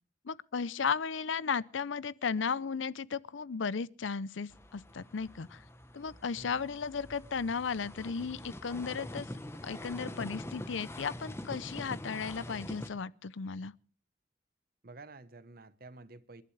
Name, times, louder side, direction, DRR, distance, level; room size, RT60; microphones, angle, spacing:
voice 1, 0.2-5.6 5.9-9.3 9.6-13.7, left 5 dB, 80° left, 0.6 m, -35 dB
sound 1, 4.5-12.9, left 1 dB, 15° left, 0.9 m, -44 dB
voice 2, 6.4-6.7 14.8-16.4, right 2 dB, 50° right, 1.0 m, -50 dB
29.0 x 11.5 x 3.3 m
head